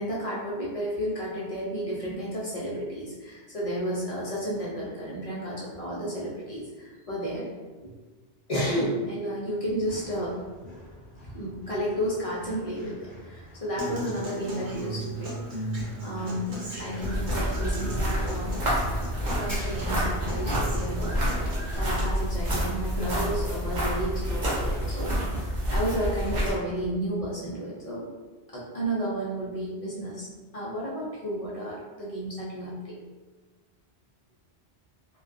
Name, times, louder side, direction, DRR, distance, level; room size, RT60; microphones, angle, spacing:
voice 1, 0.0-7.5 7.8-7.9 8.5-10.4 11.3-15.7 16.0-21.2 21.5-25.2 25.7-28.1 28.5-33.0, equal, 50° left, -6 dB, 0.4 m, -32 dB
Run, 9.6-25.7, left 1 dB, 10° right, 0.7 m, -46 dB
Human voice / Acoustic guitar, 13.8-21.8, equal, 75° right, 0.9 m, -37 dB
sound 1, 17.0-26.5, equal, 45° right, 0.8 m, -28 dB
2.2 x 2.2 x 2.5 m, 1.3 s
omnidirectional pair, 1.2 m